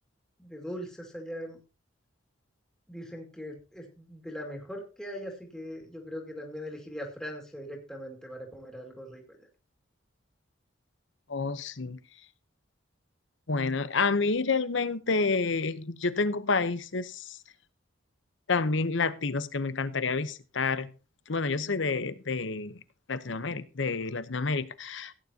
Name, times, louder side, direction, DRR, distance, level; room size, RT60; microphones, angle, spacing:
voice 1, 0.4-1.6 2.9-9.4, equal, 5° left, 2.2 m, -40 dB
voice 2, 11.3-12.0 13.5-17.2 18.5-20.9 21.3-22.8 23.1-25.1, left 4 dB, 70° left, 0.9 m, -29 dB
16.5 x 9.5 x 2.8 m
head